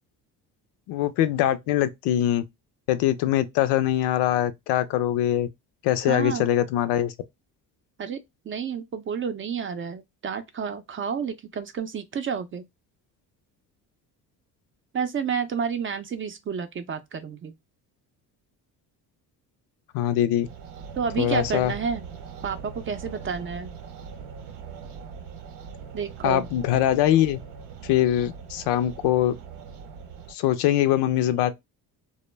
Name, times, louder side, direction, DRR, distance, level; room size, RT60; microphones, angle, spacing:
voice 1, 0.9-2.4 2.9-5.5 5.8-7.1 19.9-20.5 21.2-21.7 26.2-27.4 27.8-29.3 30.3-31.5, left 12 dB, 85° left, 0.5 m, -23 dB
voice 2, 6.0-6.5 8.0-8.2 8.5-12.7 14.9-17.5 20.9-22.1 22.4-23.7 25.9-26.5, right 6 dB, 30° right, 0.5 m, -30 dB
sound 1, 20.4-30.3, right 6 dB, 80° right, 0.7 m, -41 dB
2.1 x 2.1 x 3.1 m
cardioid pair, 95°, 40 cm